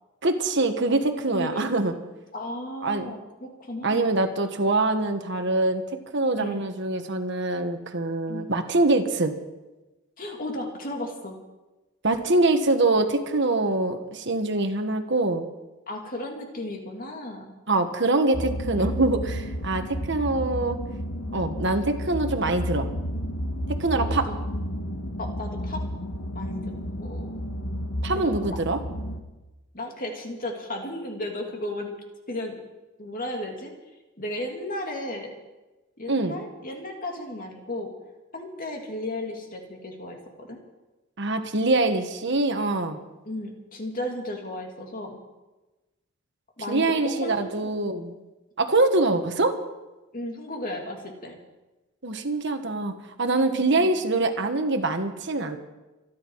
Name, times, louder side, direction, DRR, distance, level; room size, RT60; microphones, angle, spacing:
voice 1, 0.2-1.9 2.8-3.1 3.8-5.8 6.1-9.3 12.0-15.5 17.7-20.8 21.3-22.9 23.8-24.3 28.0-28.8 36.1-36.4 41.2-43.0 46.7-48.1 48.6-49.6 52.0-52.9 53.2-55.6, right 2 dB, 55° right, 6 dB, 1.5 m, -24 dB
voice 2, 1.3-1.7 2.3-4.1 6.4-6.6 8.3-8.5 10.2-11.4 15.9-17.6 18.7-18.9 23.9-24.4 25.2-25.8 26.3-26.7 27.0-27.3 28.1-28.6 29.7-31.9 32.3-32.6 33.0-33.7 34.2-35.3 36.0-37.9 38.3-40.6 43.2-45.2 46.6-48.0 50.1-51.4 53.7-53.9, left 1 dB, 40° left, 2 dB, 2.6 m, -34 dB
sound 1, 18.3-29.2, equal, 85° left, 1.6 m, -31 dB
26.0 x 10.5 x 4.8 m, 1.1 s
head